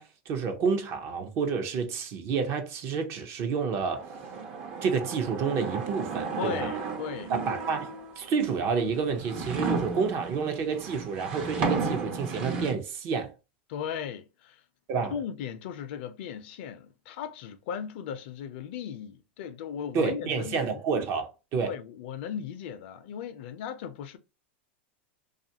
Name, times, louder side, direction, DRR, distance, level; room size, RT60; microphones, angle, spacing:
voice 1, 0.0-4.1 4.8-6.7 7.3-13.3 14.9-15.1 19.9-21.7, right 5 dB, 45° right, 0.6 m, -29 dB
sound 1, 3.9-8.3 8.9-12.7, right 4 dB, 60° right, 1.0 m, -33 dB
voice 2, 6.4-7.3 13.7-14.6 15.1-20.8 21.6-24.2, left 8 dB, 65° left, 0.5 m, -37 dB
2.6 x 2.4 x 2.8 m
supercardioid pair, 120°, 6 cm